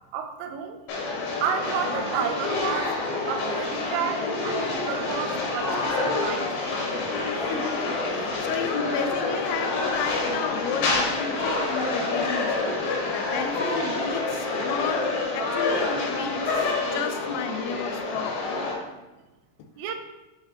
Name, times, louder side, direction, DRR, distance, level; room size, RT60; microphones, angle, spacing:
voice 1, 0.1-0.8 1.4-3.0 3.3-6.8 19.8-19.9, right 7 dB, 85° right, 6 dB, 3.2 m, -31 dB
sound 1, 0.9-18.7, left 3 dB, 75° left, 2.3 m, -27 dB
voice 2, 7.3-18.8 19.6-19.7, left 7 dB, 90° left, 7 dB, 3.2 m, -33 dB
8.8 x 3.6 x 3.3 m, 1.1 s
omnidirectional pair, 5.8 m